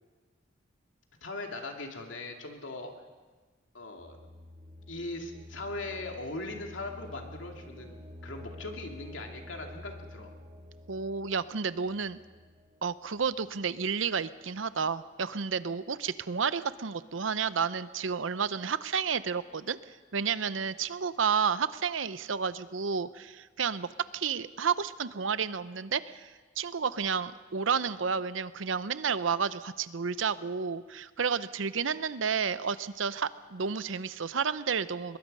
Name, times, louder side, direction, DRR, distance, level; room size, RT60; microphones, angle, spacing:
voice 1, 1.2-2.9 3.7-4.2 4.9-10.3, left 2 dB, 80° left, 2 dB, 2.6 m, -40 dB
sound 1, 4.0-13.8, left 1 dB, 30° right, 1.5 m, -49 dB
voice 2, 10.9-12.2 12.8-19.8 20.1-35.2, right 6 dB, 85° right, 14 dB, 0.7 m, -31 dB
22.5 x 22.0 x 5.5 m, 1.3 s
head